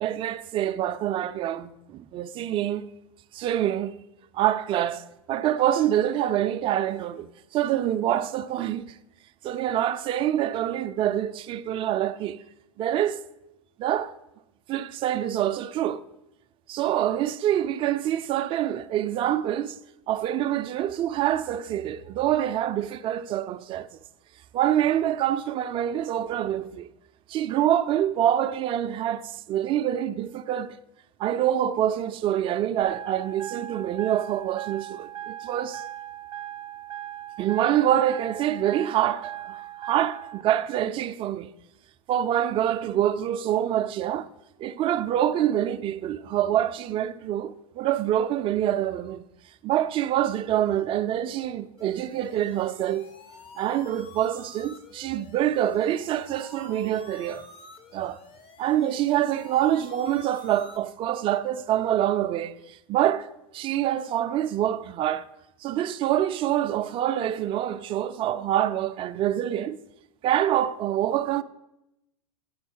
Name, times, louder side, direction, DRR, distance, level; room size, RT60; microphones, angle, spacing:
voice 1, 0.0-2.9 3.3-4.0 4.3-7.3 7.5-8.9 9.4-12.4 12.8-13.2 13.8-14.1 14.7-16.0 16.7-19.8 20.1-24.0 24.5-26.9 27.3-30.8 31.2-35.8 37.4-41.5 42.1-44.3 44.6-49.2 49.6-53.1 53.6-57.4 57.9-58.2 58.6-63.3 63.5-65.3 65.6-69.8 70.2-71.4, right 11 dB, 30° right, 0.4 m, -26 dB
sound 1, 32.8-40.4, right 12 dB, 90° right, 0.5 m, -39 dB
sound 2, 51.8-60.8, left 4 dB, 30° left, 0.8 m, -49 dB
10.0 x 3.9 x 5.4 m
hypercardioid pair, 105°, 17 cm